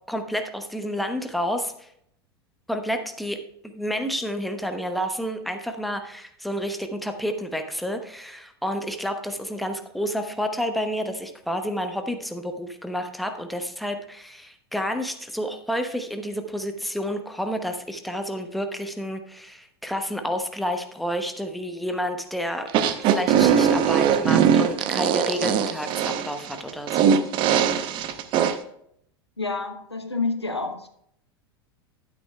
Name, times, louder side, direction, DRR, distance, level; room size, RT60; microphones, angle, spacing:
voice 1, 0.0-1.9 2.7-27.2, equal, ahead, 6 dB, 1.0 m, -30 dB
sound 1, 22.7-28.5, right 8 dB, 40° right, 0.8 m, -20 dB
voice 2, 29.4-30.9, left 3 dB, 85° left, 6 dB, 1.0 m, -28 dB
12.0 x 9.7 x 2.3 m, 0.70 s
figure-of-eight pair, 85°, 13 cm